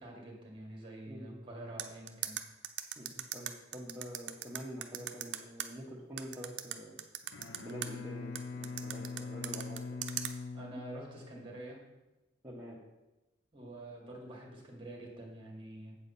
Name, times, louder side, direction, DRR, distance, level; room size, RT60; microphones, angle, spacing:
voice 1, 0.0-2.4 10.5-11.8 13.5-16.0, right 1 dB, 25° right, 0 dB, 1.9 m, -47 dB
voice 2, 1.1-1.4 3.0-7.0 7.6-10.0 12.4-12.8, equal, 10° right, -7 dB, 1.2 m, -46 dB
sound 1, 1.8-5.7 6.2-7.9 8.4-10.3, right 11 dB, 60° right, 0.6 m, -38 dB
Bowed string instrument, 7.2-11.6, left 4 dB, 70° left, 0.6 m, -43 dB
8.2 x 7.3 x 4.2 m, 1.0 s
head